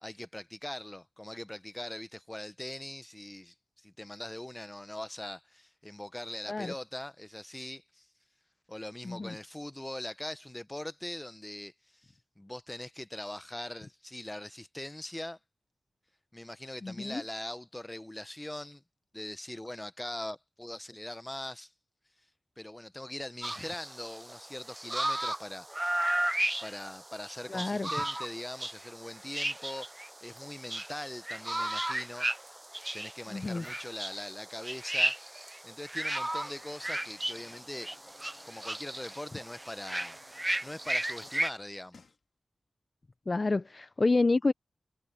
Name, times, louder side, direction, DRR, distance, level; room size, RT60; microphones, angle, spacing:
voice 1, 0.0-8.1 8.7-11.7 12.0-15.4 16.3-18.8 19.1-21.7 22.6-25.7 26.6-32.3 32.9-35.2 35.6-38.0 38.4-40.2 40.4-42.0, left 1 dB, 15° left, 0.9 m, -42 dB
voice 2, 9.0-9.4 16.8-17.2 27.5-27.9 33.3-33.6 43.3-44.5, left 3 dB, 40° left, 0.5 m, -29 dB
sound 1, 23.4-41.5, right 1 dB, 15° right, 0.3 m, -35 dB
sound 2, 36.3-41.3 41.7-42.2, left 4 dB, 75° left, 1.7 m, -61 dB
wide cardioid pair, 80°, 0 cm